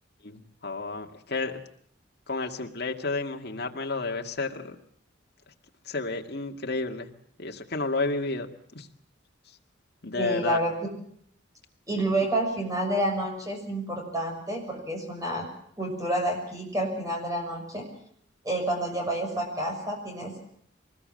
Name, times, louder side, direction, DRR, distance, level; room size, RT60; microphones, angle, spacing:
voice 1, 0.2-1.6 2.3-4.8 5.9-7.1 7.4-8.9 10.0-10.6, left 3 dB, 55° left, 3 dB, 2.1 m, -31 dB
voice 2, 10.2-10.7 11.9-15.5 15.8-17.8 18.4-20.4, right 1 dB, 15° right, 2 dB, 6.4 m, -29 dB
24.0 x 20.5 x 7.7 m, 0.66 s
head